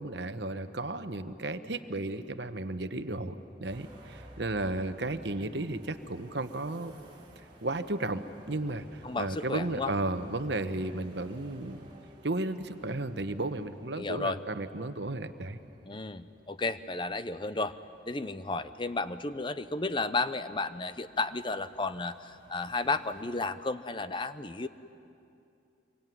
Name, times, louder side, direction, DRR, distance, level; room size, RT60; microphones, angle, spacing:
voice 1, 0.0-3.3 3.6-6.9 7.4-11.8 12.2-15.6, right 2 dB, 60° right, 10 dB, 1.1 m, -34 dB
sound 1, 3.6-23.5, right 1 dB, 25° right, 3.9 m, -56 dB
voice 2, 9.0-9.9 14.0-14.4 15.9-17.7 18.1-24.7, left 3 dB, 25° left, 12 dB, 0.7 m, -33 dB
25.5 x 23.5 x 9.3 m, 2.6 s
head